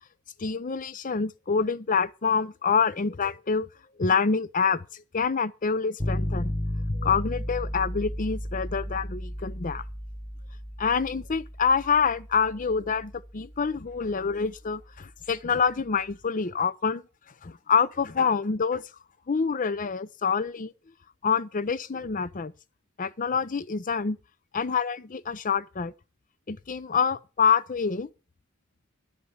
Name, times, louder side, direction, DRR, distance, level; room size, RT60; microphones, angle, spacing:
voice 1, 0.4-3.7 4.0-6.5 6.9-9.8 10.8-17.0 17.4-18.8 19.3-20.7 21.2-22.5 23.0-24.2 24.5-25.9 26.5-28.1, left 5 dB, 40° left, 0.6 m, -26 dB
sound 1, 6.0-15.9, equal, 15° left, 1.0 m, -35 dB
11.5 x 5.2 x 7.9 m
head